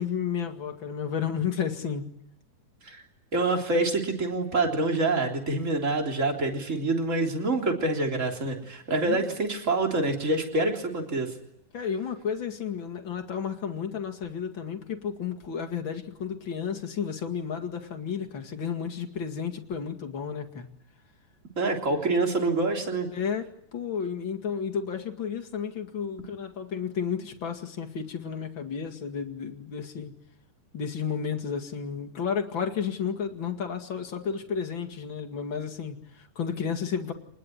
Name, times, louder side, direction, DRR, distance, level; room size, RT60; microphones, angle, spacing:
voice 1, 0.0-2.1 9.1-9.4 11.7-20.7 23.1-30.1 30.7-37.1, left 7 dB, 40° left, 5 dB, 2.6 m, -32 dB
voice 2, 3.3-11.3 21.6-23.1, right 2 dB, 25° right, 2 dB, 3.7 m, -26 dB
27.0 x 20.5 x 9.8 m, 0.74 s
omnidirectional pair, 3.7 m